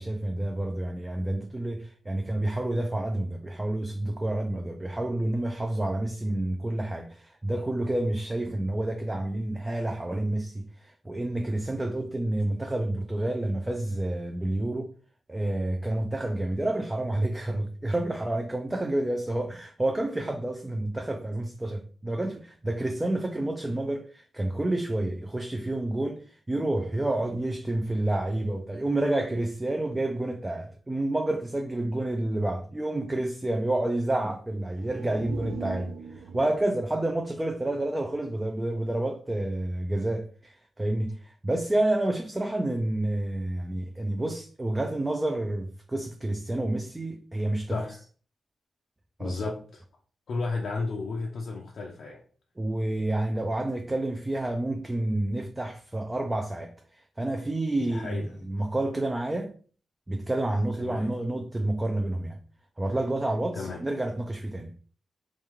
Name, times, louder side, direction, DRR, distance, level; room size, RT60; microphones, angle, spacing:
voice 1, 0.0-14.9 15.3-47.8 49.2-49.4 52.6-59.5 60.1-62.4 62.8-64.8, right 1 dB, 10° right, 0.3 m, -29 dB
sound 1, 34.6-38.4 38.7-38.8, right 5 dB, 80° right, 0.5 m, -42 dB
voice 2, 47.7-48.0 49.2-49.8 50.3-52.2 57.9-58.4 60.8-61.1 63.5-63.8, left 3 dB, 55° left, 0.5 m, -33 dB
3.3 x 3.1 x 3.5 m
wide cardioid pair, 180°, 0 cm